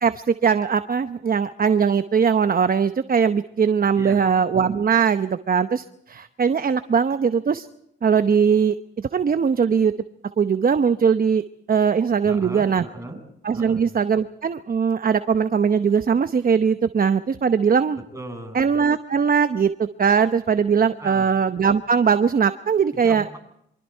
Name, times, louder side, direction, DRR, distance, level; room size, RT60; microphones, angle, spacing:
voice 1, 0.0-7.7 8.0-9.9 10.4-11.4 11.7-12.8 13.4-18.0 18.5-23.3, right 6 dB, 45° right, 10 dB, 0.9 m, -20 dB
voice 2, 12.2-13.2 13.5-13.8 18.1-18.7 21.0-21.3 22.9-23.4, right 2 dB, 15° right, 2 dB, 7.5 m, -37 dB
27.5 x 24.5 x 4.6 m, 0.74 s
cardioid pair, 70°, 21 cm